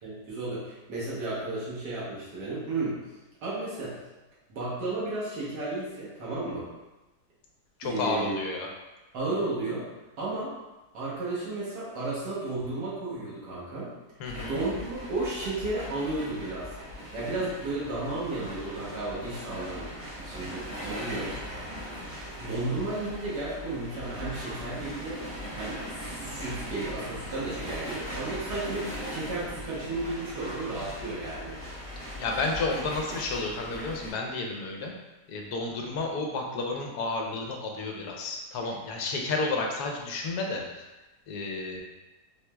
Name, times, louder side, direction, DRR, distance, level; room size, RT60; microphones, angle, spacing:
voice 1, 0.0-3.0 3.4-4.0 4.5-6.7 7.8-8.4 9.1-9.9 10.2-10.5 10.9-13.9 14.5-16.8 17.1-19.9 20.2-21.6 22.3-25.2 25.5-31.6, right 2 dB, 90° right, -8 dB, 1.6 m, -33 dB
voice 2, 7.8-8.7 14.2-14.6 32.0-34.9 35.3-40.9 41.3-41.8, left 3 dB, 75° left, 1 dB, 1.1 m, -31 dB
sound 1, 14.2-34.1, equal, 75° right, 2.0 m, -39 dB
4.7 x 3.0 x 2.2 m, 1.1 s
omnidirectional pair, 1.7 m